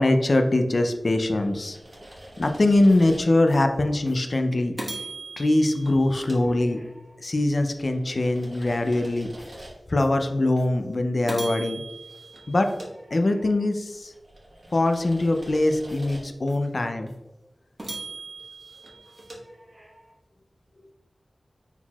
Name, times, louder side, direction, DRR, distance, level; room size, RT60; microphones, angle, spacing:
voice 1, 0.0-1.8 2.4-4.7 5.4-6.8 7.2-9.3 9.9-11.8 12.5-12.7 13.1-14.1 14.7-17.1, left 2 dB, 55° left, 6 dB, 0.4 m, -22 dB
sound 1, 1.1-3.6 4.1-4.2 4.8-7.1 7.6-10.1 10.6-10.7 11.3-13.6 14.1-16.6 17.1-17.2 17.8-20.1, right 2 dB, 50° right, 1.2 m, -41 dB
4.3 x 3.9 x 2.3 m, 1.1 s
wide cardioid pair, 50°, 0 cm